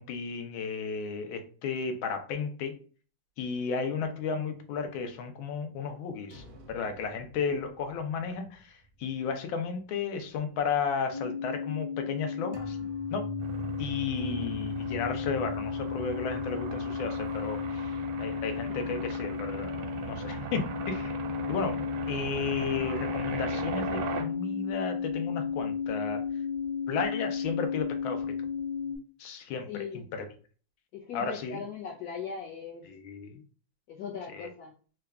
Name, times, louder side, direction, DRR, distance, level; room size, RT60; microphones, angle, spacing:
voice 1, 0.0-2.8 3.4-13.3 13.8-21.2 21.5-26.2 26.9-28.3 29.2-30.3 31.1-31.6 32.9-33.4 34.3-34.5, left 5 dB, 80° left, 6 dB, 1.5 m, -34 dB
sound 1, 6.3-9.4 9.8-9.9 12.5-18.6, right 2 dB, 65° right, 0.7 m, -45 dB
sound 2, 11.1-29.0, left 6 dB, 35° left, 0.5 m, -34 dB
sound 3, 13.4-24.2, right 6 dB, 85° right, 1.5 m, -39 dB
voice 2, 29.7-30.0 30.9-32.9 33.9-34.7, left 6 dB, 65° left, -4 dB, 1.0 m, -39 dB
3.7 x 2.3 x 3.3 m, 0.40 s
omnidirectional pair, 2.1 m